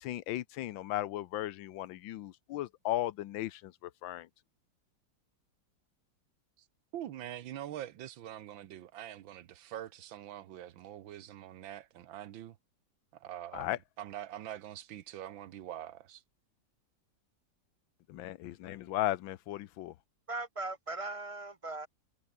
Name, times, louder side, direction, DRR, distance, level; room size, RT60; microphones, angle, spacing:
voice 1, 0.0-3.7 4.0-4.3 13.5-13.8 18.1-19.9, left 14 dB, 85° left, 1.5 m, -36 dB
voice 2, 6.9-12.6 13.1-16.2, right 12 dB, 80° right, 1.7 m, -44 dB
voice 3, 20.3-21.9, right 2 dB, 25° right, 0.8 m, -39 dB
omnidirectional pair, 2.1 m